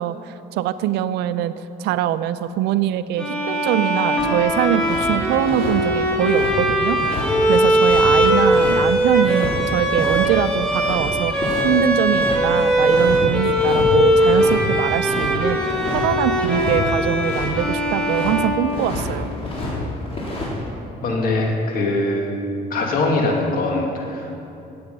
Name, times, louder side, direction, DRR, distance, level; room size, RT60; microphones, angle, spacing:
voice 1, 0.0-1.5 1.8-19.3, right 11 dB, 85° right, 13 dB, 0.5 m, -23 dB
Bowed string instrument, 3.2-19.2, equal, 5° left, 2.0 m, -20 dB
sound 1, 4.2-5.1 5.3-9.6 9.9-10.2 10.5-12.4 12.8-13.2 13.4-13.9 14.2-17.5 17.9-18.3 18.7-19.8 20.0-20.5, left 1 dB, 35° left, 3.4 m, -29 dB
voice 2, 21.0-22.3 22.7-24.3, left 2 dB, 60° left, 0 dB, 2.3 m, -22 dB
16.5 x 7.9 x 5.4 m, 2.8 s
cardioid pair, 110°, 17 cm